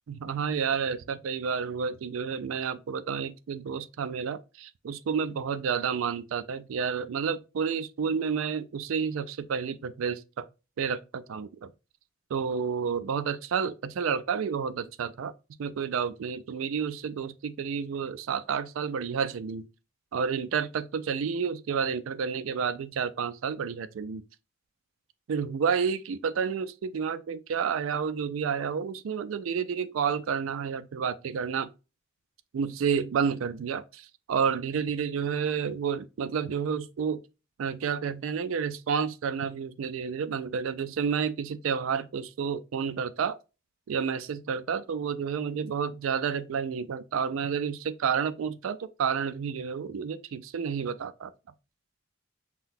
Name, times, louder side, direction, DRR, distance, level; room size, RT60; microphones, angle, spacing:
voice 1, 0.1-10.4 10.8-11.7 12.3-15.3 15.6-19.7 20.1-24.2 25.3-31.7 32.5-37.2 37.6-43.4 43.9-51.3, right 6 dB, 85° right, 0.4 m, -30 dB
5.7 x 2.2 x 2.6 m
head